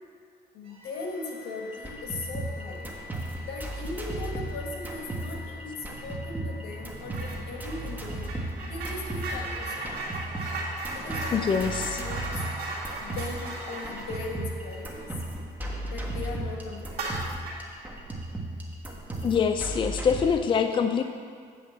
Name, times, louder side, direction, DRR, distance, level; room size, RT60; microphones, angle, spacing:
voice 1, 0.5-2.9 3.4-9.9 10.9-11.7 11.9-12.4 13.0-15.1 15.9-17.3, left 3 dB, 80° left, 1 dB, 1.6 m, -38 dB
sound 1, 0.6-15.8, equal, 35° right, 1.7 m, -46 dB
sound 2, 1.7-20.3, right 1 dB, 10° right, 1.4 m, -36 dB
sound 3, 7.1-7.4 7.7-15.9 16.2-16.3 16.9-17.7, right 2 dB, 60° right, 1.9 m, -37 dB
voice 2, 11.3-12.0 19.2-21.0, left 6 dB, 30° left, 7 dB, 0.4 m, -24 dB
8.5 x 5.0 x 7.2 m, 2.1 s
cardioid pair, 110°, 17 cm